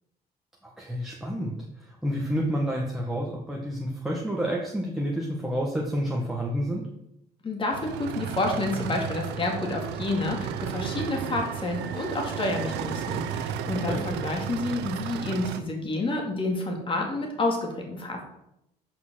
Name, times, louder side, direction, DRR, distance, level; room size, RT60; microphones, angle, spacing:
voice 1, 0.6-6.9 13.9-14.0, equal, ahead, -3 dB, 1.5 m, -29 dB
voice 2, 7.4-18.2, left 2 dB, 30° left, 1 dB, 2.4 m, -29 dB
sound 1, 7.7-15.6, right 8 dB, 85° right, 0.8 m, -33 dB
8.4 x 5.5 x 6.3 m, 0.83 s
cardioid pair, 110°, 17 cm